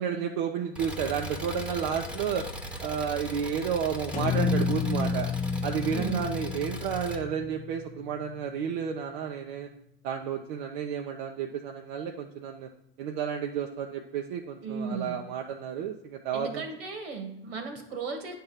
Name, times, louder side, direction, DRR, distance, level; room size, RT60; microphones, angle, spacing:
voice 1, 0.0-2.5 2.8-5.3 5.6-9.7 10.0-12.7 13.0-16.7, right 7 dB, 55° right, 3 dB, 0.7 m, -31 dB
Engine, 0.8-7.2, left 1 dB, 5° right, 0.8 m, -39 dB
sound 1, 4.1-8.3, left 4 dB, 25° left, 0.8 m, -31 dB
voice 2, 5.8-6.3 14.6-15.1 16.3-18.3, right 5 dB, 70° right, 5 dB, 1.7 m, -36 dB
9.7 x 3.7 x 5.8 m, 0.79 s
hypercardioid pair, 90°, 31 cm